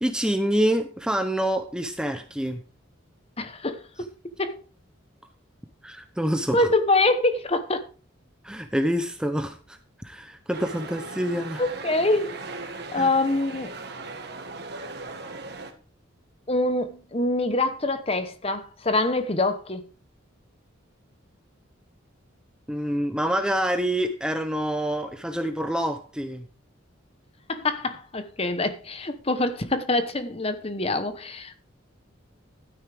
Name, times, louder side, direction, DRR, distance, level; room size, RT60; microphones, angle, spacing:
voice 1, 0.0-2.6 5.8-6.7 8.4-11.6 12.9-13.1 22.7-26.5, equal, 5° right, 0.6 m, -27 dB
voice 2, 3.4-3.8 4.4-4.5 6.5-7.8 11.6-12.4 12.9-13.7 16.5-19.8 27.5-31.6, left 2 dB, 30° left, 1.0 m, -25 dB
sound 1, 10.5-15.7, right 3 dB, 55° right, 1.5 m, -38 dB
12.5 x 9.6 x 3.4 m
head